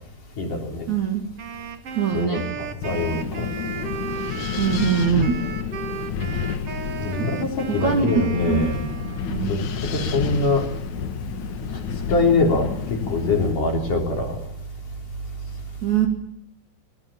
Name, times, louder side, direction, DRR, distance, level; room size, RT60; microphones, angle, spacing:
voice 1, 0.4-0.9 2.1-3.5 3.7-3.8 7.0-8.8 9.4-9.6 9.9-10.7 12.1-14.4, left 3 dB, 45° left, 1 dB, 5.2 m, -23 dB
voice 2, 0.9-1.2 2.0-2.4 4.6-5.3 7.2-7.3 7.7-8.1 8.5-8.7 9.3-9.6 15.8-16.1, right 8 dB, 45° right, 2 dB, 2.9 m, -22 dB
Wind instrument woodwind instrument, 1.4-9.5, right 7 dB, 80° right, 1.3 m, -35 dB
Wind, 2.8-13.5, left 7 dB, 80° left, 1.7 m, -30 dB
22.5 x 18.0 x 8.8 m, 0.75 s
omnidirectional pair, 5.6 m